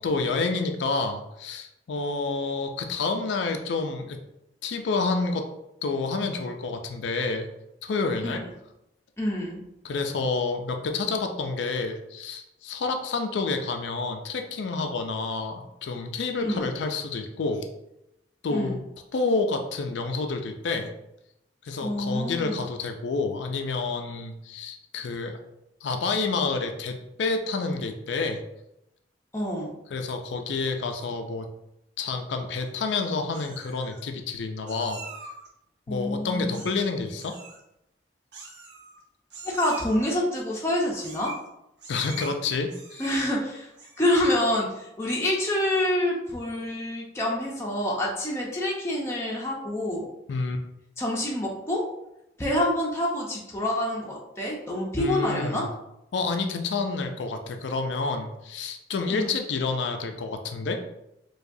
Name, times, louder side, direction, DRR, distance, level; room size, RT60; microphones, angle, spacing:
voice 1, 0.0-4.2 4.6-5.5 5.8-7.5 7.8-8.4 9.8-17.7 18.4-18.8 19.1-20.9 21.6-25.4 25.8-28.4 29.9-31.5 32.0-35.0 35.9-37.4 41.9-43.0 50.3-50.6 55.0-55.7 56.1-60.8, left 3 dB, 80° left, 5 dB, 0.4 m, -29 dB
voice 2, 9.2-9.6 16.4-16.6 18.5-18.8 21.8-22.6 29.3-29.7 35.9-36.6 39.4-41.3 43.0-43.7 44.0-50.0 51.0-51.8 52.4-55.7 59.1-59.3, left 1 dB, 15° left, -4 dB, 0.6 m, -27 dB
Meow, 32.6-33.0 33.3-34.0 34.7-35.5 36.5-36.9 37.2-37.6 38.3-39.0 39.3-40.0 41.0-41.5 41.8-42.3 42.7-43.3 43.7-44.1, right 4 dB, 75° right, 0.9 m, -44 dB
4.7 x 2.3 x 2.6 m, 0.85 s
head